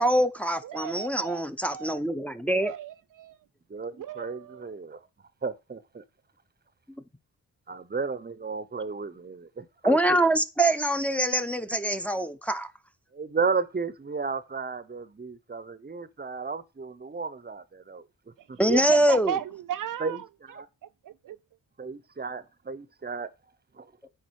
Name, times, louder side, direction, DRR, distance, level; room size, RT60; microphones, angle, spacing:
voice 1, 0.0-2.7 9.8-12.7 18.6-19.4 24.0-24.1, right 1 dB, 5° left, 0.7 m, -24 dB
voice 2, 0.6-1.4 1.7-2.0 2.6-3.4 4.0-4.7 18.7-20.2 21.1-21.4, right 11 dB, 65° right, 0.5 m, -35 dB
voice 3, 3.7-5.0 5.4-6.0 7.7-10.2 13.1-18.0 20.0-20.7 21.8-23.3 23.8-23.9, right 4 dB, 30° right, 0.8 m, -33 dB
9.5 x 4.2 x 4.7 m
cardioid pair, 75°, 35 cm